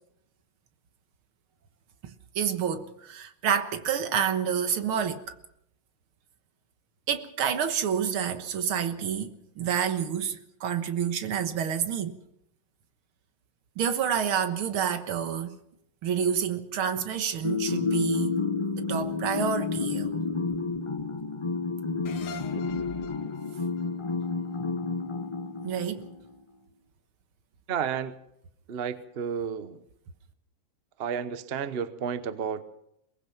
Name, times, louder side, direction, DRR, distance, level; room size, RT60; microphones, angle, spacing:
voice 1, 2.0-5.4 7.1-12.2 13.8-15.6 16.0-18.4 18.7-20.1 25.6-26.1, right 8 dB, 80° right, 2.2 m, -29 dB
sound 1, 17.4-26.2, left 4 dB, 30° left, 0.6 m, -30 dB
sound 2, 22.1-25.4, left 4 dB, 85° left, 2.4 m, -45 dB
voice 2, 27.7-28.1 28.7-29.8 31.0-32.6, right 7 dB, 45° right, 0.8 m, -31 dB
22.5 x 19.5 x 6.0 m
omnidirectional pair, 2.3 m